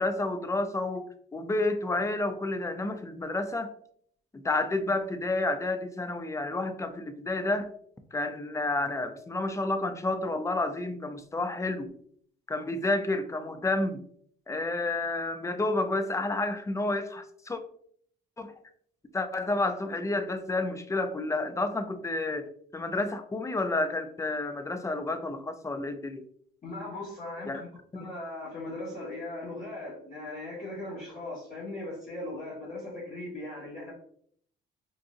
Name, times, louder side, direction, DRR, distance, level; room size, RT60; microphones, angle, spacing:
voice 1, 0.0-3.7 4.3-7.7 8.1-11.9 12.5-14.0 14.5-17.6 18.4-18.5 19.1-26.2 27.5-27.6 27.9-28.1, left 2 dB, 15° left, 8 dB, 0.4 m, -30 dB
voice 2, 26.6-33.9, left 2 dB, 45° left, -8 dB, 1.4 m, -39 dB
3.8 x 2.5 x 2.4 m, 0.62 s
cardioid pair, 90°, 20 cm